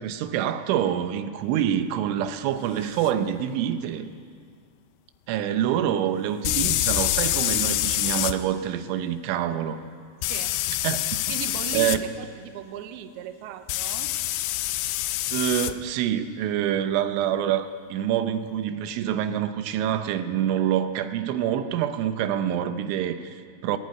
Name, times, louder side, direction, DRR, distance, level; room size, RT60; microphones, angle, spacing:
voice 1, 0.0-4.1 5.3-9.8 10.8-11.0 11.7-12.0 15.3-23.8, right 10 dB, 90° right, 9 dB, 3.4 m, -26 dB
sound 1, 3.0-3.1 6.4-8.3 10.2-12.0 13.7-15.7, left 15 dB, 90° left, 2.2 m, -26 dB
voice 2, 10.2-10.6 11.3-14.1, right 10 dB, 70° right, 8 dB, 2.6 m, -37 dB
19.0 x 19.0 x 9.5 m, 2.1 s
omnidirectional pair, 5.3 m